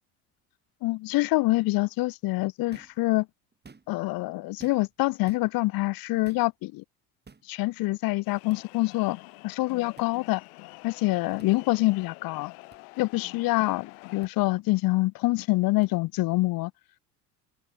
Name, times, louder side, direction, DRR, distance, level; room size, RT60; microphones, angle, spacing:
voice 1, 0.8-3.3 3.9-6.8 7.5-9.2 9.4-10.4 10.8-12.5 13.0-16.7, left 20 dB, 45° left, 1.0 m, -26 dB
sound 1, 2.7-3.0 3.5-4.1 4.6-5.0 5.3-5.5 6.2-6.5 7.2-7.5 8.5-8.6 10.0-10.1 11.4-11.5 12.7-12.8 14.2-14.3 15.8-15.9, right 4 dB, 20° right, 6.2 m, -52 dB
sound 2, 8.2-14.3, left 32 dB, 65° left, 7.1 m, -47 dB
open air
figure-of-eight pair, 60°, 48 cm